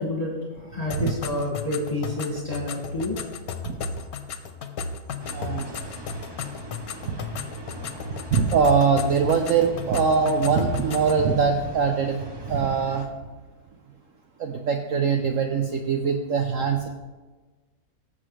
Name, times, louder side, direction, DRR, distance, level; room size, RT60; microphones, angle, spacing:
voice 1, 0.0-3.2, left 2 dB, 20° left, -3 dB, 2.1 m, -29 dB
sound 1, 0.9-11.2, left 5 dB, 65° left, 1.3 m, -35 dB
sound 2, 5.2-13.1, right 1 dB, 20° right, 0.9 m, -42 dB
voice 2, 5.3-5.7 7.0-7.2 8.3-12.2 12.4-13.0 14.4-16.9, right 5 dB, 60° right, 3 dB, 1.0 m, -22 dB
18.0 x 7.4 x 3.3 m, 1.3 s
omnidirectional pair, 1.8 m